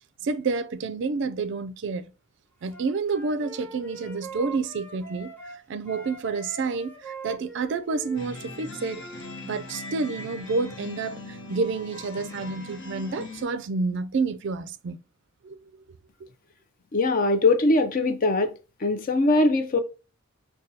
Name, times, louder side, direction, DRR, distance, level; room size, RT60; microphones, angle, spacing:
voice 1, 0.2-2.1 2.6-5.3 5.7-9.0 9.4-15.0 15.4-15.6, right 4 dB, 60° right, 0.4 m, -29 dB
Wind instrument woodwind instrument, 2.7-5.6 5.8-9.3, right 3 dB, 10° left, 0.8 m, -42 dB
sound 1, 8.1-13.4, left 2 dB, 60° left, 1.0 m, -40 dB
voice 2, 16.9-18.5 18.8-19.8, left 2 dB, 40° left, 0.5 m, -21 dB
5.1 x 2.3 x 2.6 m
head